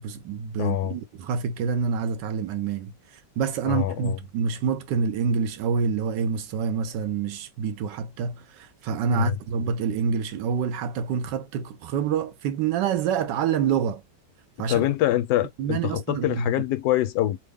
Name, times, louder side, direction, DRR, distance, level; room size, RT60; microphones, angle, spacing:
voice 1, 0.0-2.9 3.4-8.4 8.8-14.0 14.6-14.9 15.6-16.5, right 6 dB, 90° right, 1.3 m, -27 dB
voice 2, 0.6-1.0 3.7-4.2 9.1-9.4 14.6-17.4, left 14 dB, 75° left, 1.1 m, -25 dB
3.4 x 2.1 x 3.4 m
omnidirectional pair, 1.8 m